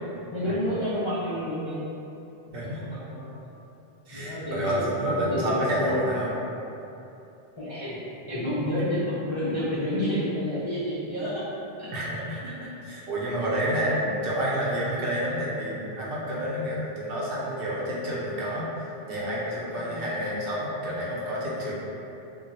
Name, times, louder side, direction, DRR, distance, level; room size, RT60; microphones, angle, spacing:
voice 1, 0.3-1.9 2.7-3.3 4.1-6.0 7.6-8.0 8.3-11.4 11.8-11.9 13.8-14.2 19.8-20.1, equal, 50° left, -10 dB, 0.3 m, -30 dB
voice 2, 4.1-6.3 11.9-18.7 19.1-21.7, equal, 60° right, -6 dB, 0.8 m, -29 dB
2.2 x 2.2 x 3.9 m, 2.9 s
omnidirectional pair, 1.1 m